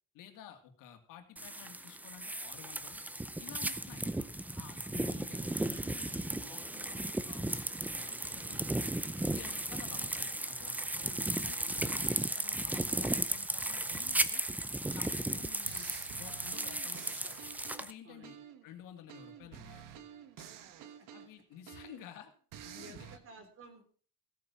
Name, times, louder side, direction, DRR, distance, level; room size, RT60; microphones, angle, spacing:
voice 1, 0.1-3.0 3.4-4.3 4.6-7.6 7.9-9.0 9.3-10.9 11.4-14.4 14.7-17.4 17.8-18.4 18.6-20.0 20.4-20.5 21.1-22.3 22.6-23.1, left 10 dB, 75° left, 6 dB, 2.5 m, -53 dB
sound 1, 1.4-17.9, right 1 dB, 5° right, 0.5 m, -35 dB
voice 2, 4.9-5.2 10.9-11.9 18.0-18.4 20.8-21.1 21.8-21.9 22.7-23.8, right 3 dB, 40° right, 6 dB, 3.7 m, -55 dB
sound 2, 15.1-15.3 15.7-18.7 19.1-22.1 22.5-23.2, right 9 dB, 75° right, 1.4 m, -50 dB
16.5 x 8.6 x 5.8 m, 0.43 s
cardioid pair, 165°, 33 cm